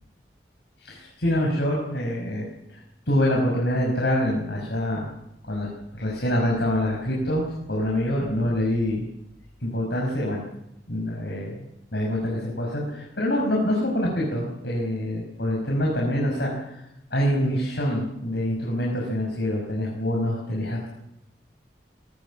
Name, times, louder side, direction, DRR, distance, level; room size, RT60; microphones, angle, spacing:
voice 1, 0.8-5.1 5.4-9.1 9.6-10.4 10.9-11.6 11.9-16.8 17.1-20.9, left 1 dB, 75° left, -1 dB, 5.8 m, -26 dB
19.5 x 19.5 x 7.5 m, 0.83 s
head